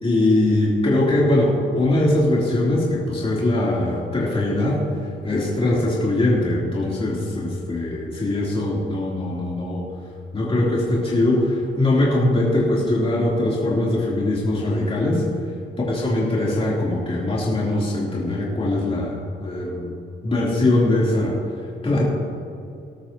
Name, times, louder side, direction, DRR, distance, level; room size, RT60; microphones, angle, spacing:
voice 1, 0.0-4.8 5.2-9.8 10.3-15.2 15.9-19.9 20.2-21.4 21.8-22.0, left 1 dB, 30° left, -6 dB, 3.5 m, -21 dB
19.5 x 12.5 x 3.0 m, 2.6 s
cardioid pair, 90°, 20 cm